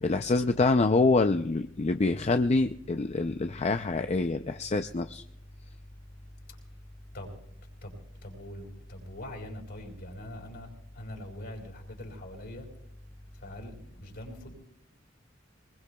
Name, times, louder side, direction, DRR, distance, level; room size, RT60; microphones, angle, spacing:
voice 1, 0.0-5.2, left 3 dB, 35° left, 0.5 m, -26 dB
voice 2, 8.2-10.7 10.9-12.7 13.4-14.5, left 1 dB, 55° left, 4.1 m, -42 dB
24.0 x 21.0 x 2.3 m
head